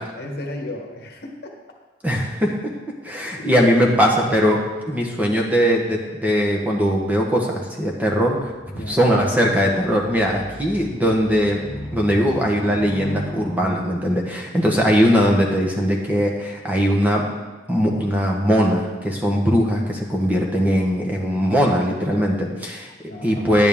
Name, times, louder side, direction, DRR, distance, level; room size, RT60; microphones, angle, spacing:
voice 1, 0.0-1.5 3.4-3.7 8.7-9.0 23.1-23.6, left 1 dB, 55° left, 2 dB, 1.3 m, -33 dB
voice 2, 2.0-2.7 3.0-4.6 4.9-8.4 8.9-11.6 11.9-17.2 17.7-22.9 23.2-23.7, equal, 10° right, -1 dB, 1.1 m, -20 dB
sound 1, 8.4-13.7, equal, 5° left, 2.2 m, -35 dB
10.5 x 9.1 x 3.6 m, 1.2 s
head